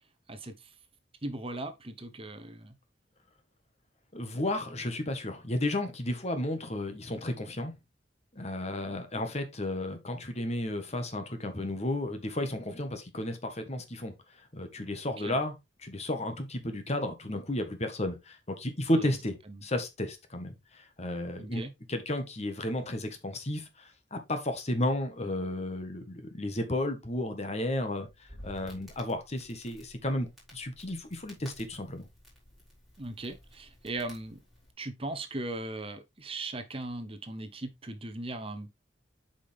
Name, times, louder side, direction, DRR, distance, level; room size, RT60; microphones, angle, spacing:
voice 1, 0.3-0.7 1.2-2.8 15.1-15.4 19.0-19.2 19.5-19.6 21.4-21.7 33.0-34.4 34.8-38.9, right 2 dB, 30° right, 0.9 m, -38 dB
voice 2, 4.1-7.7 8.3-14.1 14.5-15.5 15.8-21.6 21.9-28.1 28.4-32.1, left 1 dB, 35° left, 1.5 m, -33 dB
Crackle, 28.1-34.7, equal, ahead, 4.7 m, -53 dB
8.3 x 5.2 x 3.5 m
head